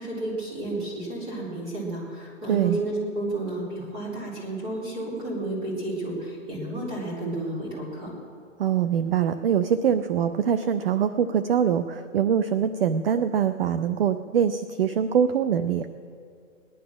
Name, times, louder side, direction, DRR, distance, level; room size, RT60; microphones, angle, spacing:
voice 1, 0.0-8.1, right 2 dB, 15° right, -4 dB, 3.8 m, -31 dB
voice 2, 2.5-2.8 8.6-15.9, right 8 dB, 45° right, 10 dB, 0.6 m, -23 dB
18.5 x 11.0 x 6.1 m, 2.3 s
hypercardioid pair, 160°, 40 cm